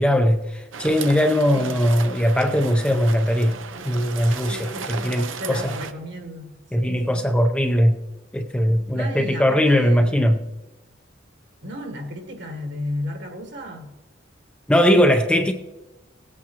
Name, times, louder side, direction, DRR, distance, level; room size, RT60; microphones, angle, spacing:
voice 1, 0.0-3.5 3.8-5.7 6.7-8.0 8.3-10.4 14.7-15.5, equal, 5° left, 0.5 m, -20 dB
sound 1, 0.7-5.9, right 6 dB, 80° right, 0.7 m, -35 dB
voice 2, 4.5-7.3 8.9-10.4 11.6-13.9, left 1 dB, 60° right, 1.6 m, -34 dB
18.0 x 8.5 x 2.9 m
head